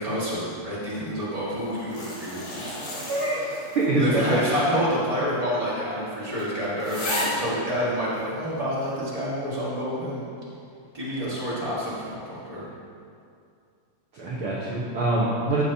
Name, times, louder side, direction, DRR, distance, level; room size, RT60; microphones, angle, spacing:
voice 1, 0.0-2.6 4.0-10.2 10.9-12.6, equal, 50° right, -9 dB, 0.4 m, -28 dB
sound 1, 1.6-4.0 4.4-4.5 5.3-5.4 5.8-5.9 6.4-6.5 6.8-7.5 8.2-8.3, left 1 dB, 70° left, 4.3 m, -32 dB
voice 2, 3.1-4.2 14.1-15.6, right 2 dB, 75° right, -6 dB, 1.2 m, -25 dB
14.5 x 8.2 x 2.9 m, 2.4 s
omnidirectional pair, 4.2 m